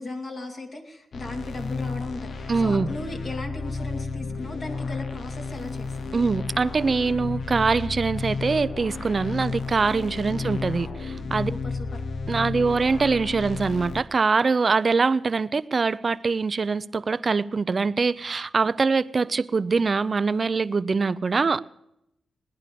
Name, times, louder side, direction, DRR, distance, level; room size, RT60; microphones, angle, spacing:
voice 1, 0.0-6.1 10.2-10.4 11.5-11.9, left 2 dB, 45° left, 3 dB, 2.7 m, -37 dB
sound 1, 1.1-14.0, left 4 dB, 65° left, 1.0 m, -32 dB
voice 2, 2.5-2.9 6.1-11.5 12.3-21.6, right 4 dB, 40° right, 16 dB, 0.6 m, -23 dB
18.5 x 10.5 x 6.8 m, 0.83 s
cardioid pair, 90°, 0 cm